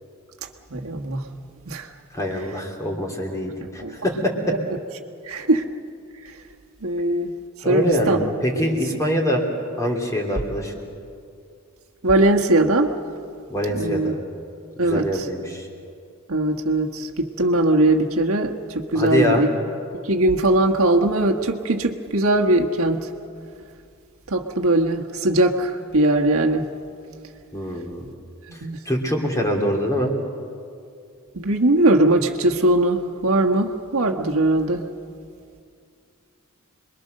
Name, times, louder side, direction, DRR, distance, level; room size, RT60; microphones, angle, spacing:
voice 1, 0.7-1.3 1.7-1.9 3.8-3.9 5.3-5.6 6.8-7.3 7.6-8.2 12.0-12.9 13.7-14.1 14.8-15.1 16.3-19.5 20.0-23.1 24.3-26.6 28.6-28.8 31.3-34.8, right 1 dB, 75° right, 2 dB, 1.5 m, -20 dB
voice 2, 2.1-4.6 7.6-9.5 9.8-10.8 13.5-14.2 14.8-15.7 18.9-19.5 27.5-28.0 28.5-30.1, equal, 15° left, 1 dB, 3.1 m, -24 dB
27.0 x 22.0 x 6.6 m, 2.3 s
head